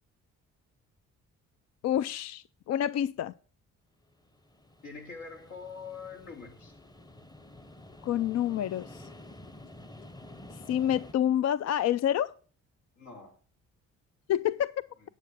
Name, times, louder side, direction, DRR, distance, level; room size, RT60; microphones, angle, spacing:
voice 1, 1.8-3.3 8.0-9.1 10.5-12.3 14.3-14.7, left 10 dB, 60° left, 0.4 m, -28 dB
sound 1, 4.1-11.1, left 1 dB, 15° left, 0.8 m, -50 dB
voice 2, 4.8-6.8 13.0-13.4, left 5 dB, 80° left, 3.2 m, -44 dB
9.7 x 7.5 x 6.2 m
cardioid pair, 90°, 30 cm